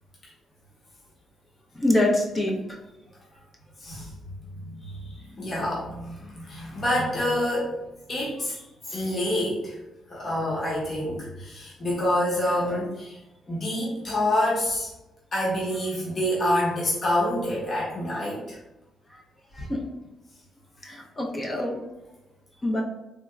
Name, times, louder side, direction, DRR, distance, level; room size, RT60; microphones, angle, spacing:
voice 1, 1.7-2.8 19.1-19.2 19.5-19.8 20.8-21.8 22.6-22.8, left 1 dB, 25° left, -1 dB, 0.6 m, -25 dB
voice 2, 3.8-4.1 4.5-7.7 8.1-9.8 10.1-13.2 13.5-14.9 15.3-18.6, left 1 dB, 45° left, -6 dB, 1.2 m, -27 dB
3.3 x 2.8 x 2.3 m, 0.96 s
cardioid pair, 90°, 0 cm